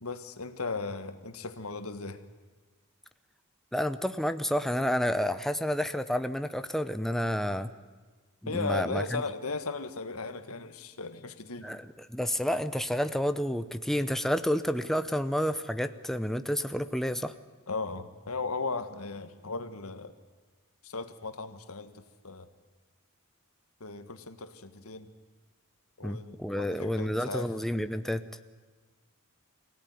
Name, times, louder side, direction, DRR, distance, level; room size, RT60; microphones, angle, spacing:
voice 1, 0.0-2.2 8.5-11.8 17.7-20.1 20.8-22.5 23.8-25.1 26.0-27.5, left 4 dB, 85° left, 9 dB, 1.6 m, -36 dB
voice 2, 3.7-7.7 8.4-9.2 11.6-17.3 26.0-28.2, equal, ahead, 9 dB, 0.7 m, -30 dB
24.0 x 17.0 x 9.5 m, 1.4 s
head